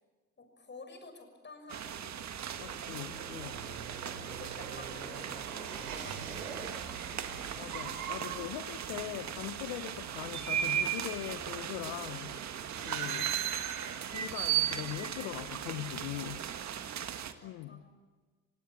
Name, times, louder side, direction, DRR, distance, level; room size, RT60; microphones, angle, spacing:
voice 1, 0.4-2.0 3.3-6.7 8.4-8.6 16.1-16.3 16.7-17.0 17.4-17.9, left 3 dB, 25° left, 6 dB, 6.5 m, -52 dB
sound 1, 1.7-17.3, right 10 dB, 40° right, 1.7 m, -37 dB
sound 2, 1.7-14.8 15.1-15.7, right 7 dB, 80° right, 3.7 m, -45 dB
voice 2, 2.6-3.6 7.1-7.2 7.6-12.4 12.8-13.4 14.1-16.4 17.4-17.8, left 15 dB, 60° left, 11 dB, 1.0 m, -41 dB
28.5 x 18.0 x 8.5 m, 1.3 s
hypercardioid pair, 70°, 44 cm